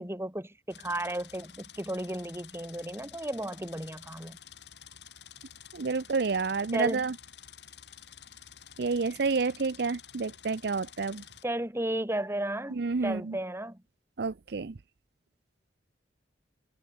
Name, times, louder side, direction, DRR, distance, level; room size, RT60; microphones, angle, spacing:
voice 1, 0.0-4.4 6.7-7.0 11.4-13.8, right 1 dB, 15° right, 4.0 m, -34 dB
sound 1, 0.7-11.4, left 9 dB, 75° left, 4.2 m, -50 dB
voice 2, 5.7-7.1 8.8-11.2 12.7-13.4 14.2-14.8, right 4 dB, 65° right, 0.6 m, -29 dB
head